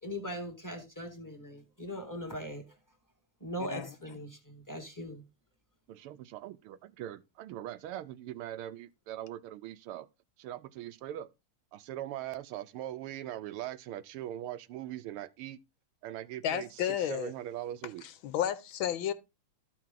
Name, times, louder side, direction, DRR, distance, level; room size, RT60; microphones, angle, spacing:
voice 1, 0.0-2.6 3.4-5.2, equal, 10° left, 1.2 m, -40 dB
voice 2, 5.9-10.1 10.4-11.3 11.7-15.6 16.0-18.0, right 12 dB, 90° right, 1.6 m, -41 dB
voice 3, 16.4-17.3 18.2-19.1, left 10 dB, 75° left, 1.4 m, -32 dB
13.0 x 4.7 x 3.8 m
omnidirectional pair, 2.4 m